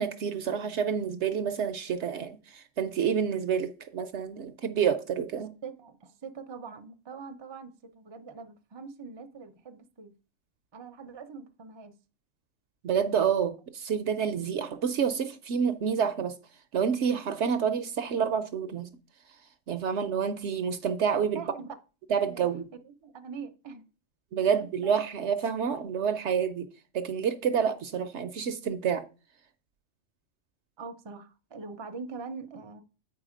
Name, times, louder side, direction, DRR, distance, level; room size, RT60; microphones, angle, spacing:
voice 1, 0.0-5.5 12.8-16.3 16.7-18.9 19.7-21.4 22.1-22.7 24.3-26.7 26.9-29.0, right 7 dB, 65° right, 0.9 m, -28 dB
voice 2, 5.4-10.1 10.7-11.9 21.3-21.8 22.2-22.5 22.8-23.8 24.4-24.9 30.8-32.8, right 5 dB, 25° right, 0.6 m, -43 dB
8.6 x 4.8 x 5.0 m
omnidirectional pair, 1.4 m